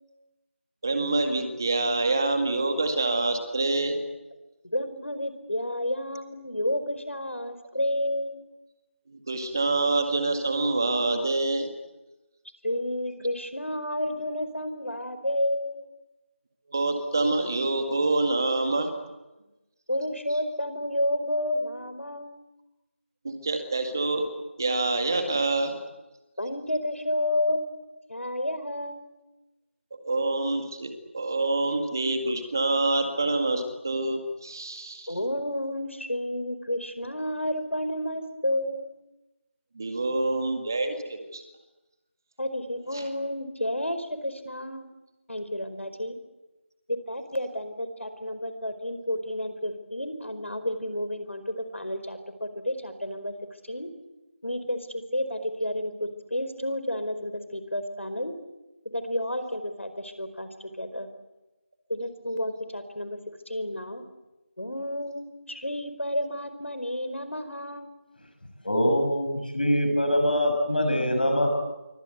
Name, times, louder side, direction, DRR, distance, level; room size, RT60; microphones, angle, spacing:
voice 1, 0.8-4.0 9.3-11.7 16.7-18.9 23.2-24.3 24.6-25.8 30.0-35.1 39.8-41.4 42.9-43.0, right 2 dB, 15° right, 7 dB, 1.9 m, -26 dB
voice 2, 4.6-8.4 12.6-15.9 19.9-22.4 26.4-27.8 28.1-29.1 35.1-38.9 42.4-44.9 45.3-46.2 47.1-53.3 53.7-53.9 54.4-58.3 58.9-60.5 60.8-61.1 61.9-63.2 63.5-64.0 64.6-67.9, left 1 dB, 70° left, 10 dB, 4.7 m, -31 dB
voice 3, 68.6-71.6, equal, 45° left, 5 dB, 6.5 m, -23 dB
25.5 x 24.5 x 8.2 m, 1.0 s
figure-of-eight pair, 175°, 7 cm